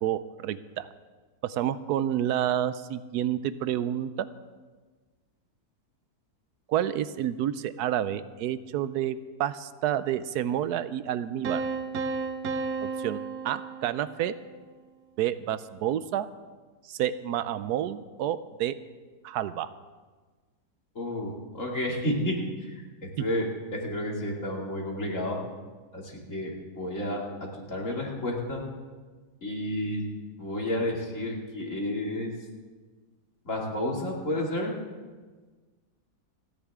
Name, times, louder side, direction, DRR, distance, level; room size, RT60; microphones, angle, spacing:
voice 1, 0.0-0.9 1.4-4.3 6.7-11.6 12.8-13.2 13.4-14.3 15.2-16.3 16.9-18.8 19.2-19.7 23.2-23.3, right 11 dB, 90° right, 14 dB, 1.2 m, -29 dB
sound 1, 11.4-14.3, right 4 dB, 70° right, 1.3 m, -33 dB
voice 2, 20.9-22.3 22.6-23.5 23.7-25.4 25.9-27.2 27.7-28.6 29.4-30.0 30.4-32.3 33.4-34.7, left 1 dB, 50° left, -2 dB, 3.0 m, -31 dB
29.0 x 10.5 x 3.6 m, 1.4 s
omnidirectional pair, 1.7 m